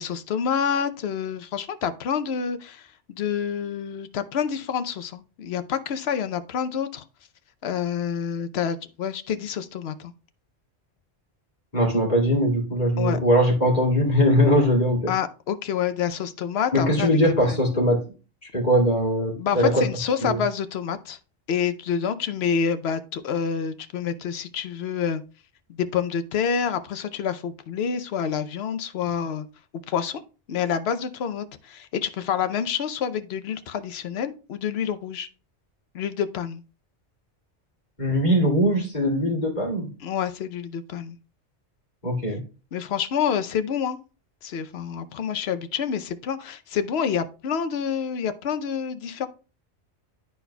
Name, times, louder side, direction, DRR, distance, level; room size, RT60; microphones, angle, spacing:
voice 1, 0.0-7.0 7.6-10.1 13.0-13.2 15.1-17.2 17.5-17.6 19.4-21.2 21.5-25.2 25.8-29.4 29.9-30.2 30.5-35.3 35.9-36.6 40.0-41.2 42.7-44.0 44.4-49.3, left 7 dB, 70° left, 0.9 m, -28 dB
voice 2, 11.7-15.1 16.7-18.0 18.5-19.9 20.2-20.4 38.0-39.9 42.0-42.4, equal, 40° left, 2.4 m, -21 dB
11.5 x 4.3 x 2.2 m
omnidirectional pair, 1.2 m